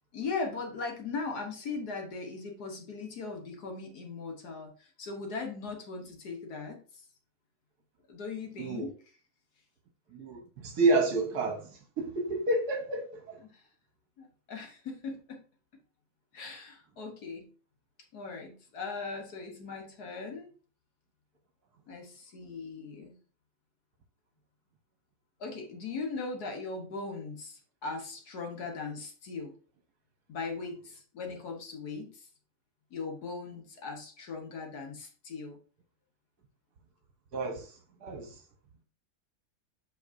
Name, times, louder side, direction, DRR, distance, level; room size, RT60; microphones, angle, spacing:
voice 1, 0.1-7.0 8.1-8.9 13.4-13.6 14.2-15.4 16.3-17.5 18.1-20.5 21.9-23.2 25.4-29.5 30.3-32.3 32.9-35.6, left 4 dB, 55° left, 1.5 m, -39 dB
voice 2, 8.6-8.9 10.1-11.7 12.0-13.4 37.3-37.7 38.0-38.3, right 2 dB, 60° right, 1.4 m, -29 dB
8.0 x 5.1 x 2.6 m
omnidirectional pair, 2.1 m